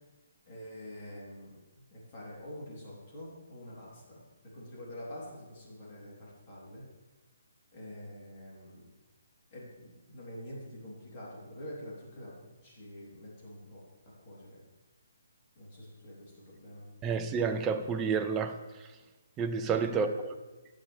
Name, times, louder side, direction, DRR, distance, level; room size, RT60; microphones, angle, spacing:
voice 1, 0.5-4.2 4.5-6.8 7.7-8.9 9.5-13.8 14.2-14.6 15.6-16.9 19.9-20.2, left 1 dB, 30° left, 3.7 m, -46 dB
voice 2, 17.0-18.6 19.4-20.1, right 6 dB, 15° right, 0.6 m, -29 dB
11.0 x 8.8 x 3.5 m
figure-of-eight pair, 135°, 0 cm